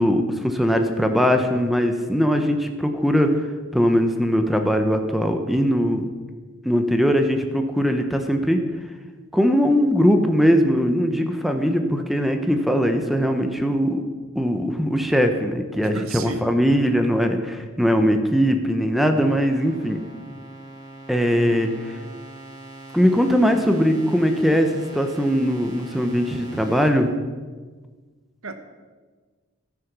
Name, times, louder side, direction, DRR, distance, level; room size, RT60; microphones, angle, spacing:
voice 1, 0.0-3.3 3.7-6.1 6.6-8.6 9.3-14.0 14.3-20.0 21.1-21.7 22.9-27.1, equal, ahead, 6 dB, 0.8 m, -20 dB
voice 2, 15.8-16.6 21.4-21.7 28.4-28.5, right 3 dB, 75° right, 8 dB, 1.1 m, -34 dB
sound 1, 19.2-26.9, right 2 dB, 20° right, 1.7 m, -42 dB
15.0 x 6.4 x 6.0 m, 1.4 s
head